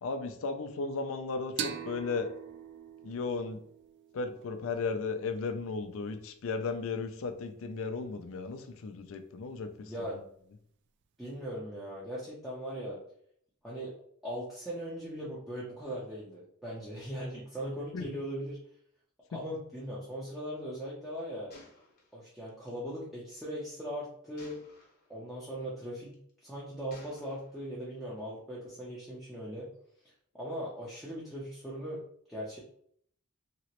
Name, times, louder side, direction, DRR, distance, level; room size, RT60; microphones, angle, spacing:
voice 1, 0.0-2.3 3.0-3.6 4.1-10.2 17.9-18.2, left 4 dB, 65° left, 8 dB, 0.4 m, -35 dB
sound 1, 1.6-4.9, right 9 dB, 55° right, 0.3 m, -42 dB
voice 2, 9.8-10.2 11.2-13.0 13.6-13.9 14.2-18.6 19.3-21.5 22.1-24.6 25.1-26.2 26.4-29.7 30.3-32.0 32.3-32.6, equal, ahead, -8 dB, 0.6 m, -39 dB
Gunshot gunfire, 21.5-22.8 24.4-25.1 26.0-26.3 26.9-27.7, left 2 dB, 45° left, 0.9 m, -56 dB
3.0 x 2.9 x 2.9 m, 0.66 s
head